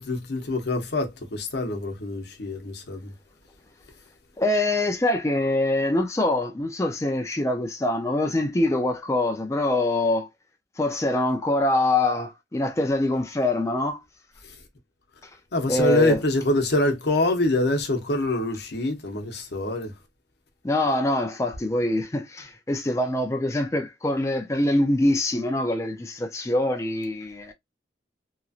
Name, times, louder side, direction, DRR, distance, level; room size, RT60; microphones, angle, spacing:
voice 1, 0.0-3.1 15.5-19.9, left 1 dB, 65° left, 0.8 m, -25 dB
voice 2, 4.4-10.3 10.8-14.0 15.7-16.2 20.6-27.5, left 1 dB, 15° left, 0.4 m, -24 dB
3.0 x 2.6 x 2.4 m
head